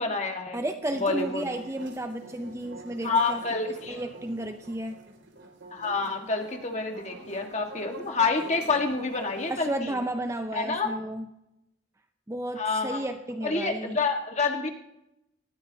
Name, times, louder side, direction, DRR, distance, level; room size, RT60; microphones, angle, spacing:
voice 1, 0.0-0.6 1.0-1.5 3.0-4.0 5.7-10.0 10.5-10.9 12.6-13.1 13.4-14.7, left 4 dB, 35° left, 4 dB, 1.6 m, -28 dB
voice 2, 0.5-5.0 9.5-11.3 12.3-14.0, right 1 dB, 15° right, 7 dB, 0.5 m, -33 dB
sound 1, 0.8-9.6, right 2 dB, 60° right, 2.7 m, -46 dB
19.0 x 13.0 x 2.8 m, 0.86 s
head